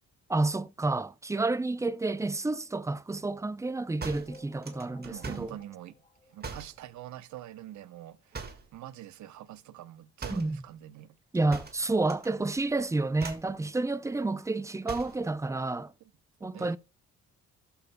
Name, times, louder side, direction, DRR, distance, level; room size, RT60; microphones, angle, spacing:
voice 1, 0.3-5.6 10.3-10.6 11.3-15.9 16.4-16.8, right 2 dB, 10° right, 0.5 m, -30 dB
sound 1, 4.0-5.6 6.4-6.8 8.3-8.8 10.2-10.6 11.5-12.3 12.5-12.8 13.2-13.6 14.9-15.2, right 4 dB, 30° right, 1.8 m, -41 dB
sound 2, 4.3-7.1 7.6-7.7 7.9-8.0 8.3-8.4 9.3-9.4 9.8-9.9, left 1 dB, 15° left, 5.6 m, -56 dB
voice 2, 5.0-5.9 6.3-11.2 16.4-16.8, right 13 dB, 70° right, 0.8 m, -45 dB
15.5 x 7.0 x 2.2 m
cardioid pair, 90°, 30 cm